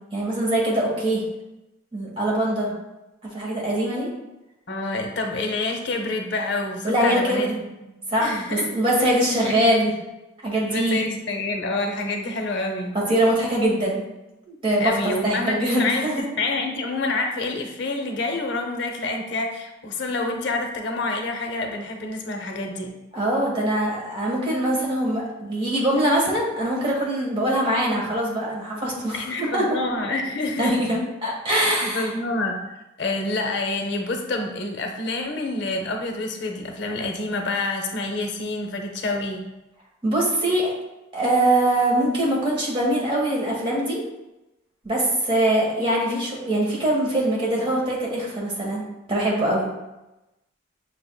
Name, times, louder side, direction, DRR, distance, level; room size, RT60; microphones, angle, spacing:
voice 1, 0.1-1.2 1.9-2.7 3.2-4.1 6.8-7.5 8.1-9.9 10.4-11.2 12.9-14.0 14.5-16.1 23.1-29.6 30.6-32.1 40.0-40.7 41.1-44.0 44.8-48.8 49.1-49.7, right 1 dB, 30° right, -4 dB, 1.2 m, -23 dB
voice 2, 4.7-7.5 8.2-8.7 10.5-13.0 14.8-22.9 29.1-30.8 31.6-32.6 33.0-39.5, left 2 dB, 60° left, 3 dB, 0.6 m, -27 dB
6.5 x 3.4 x 2.2 m, 0.97 s
head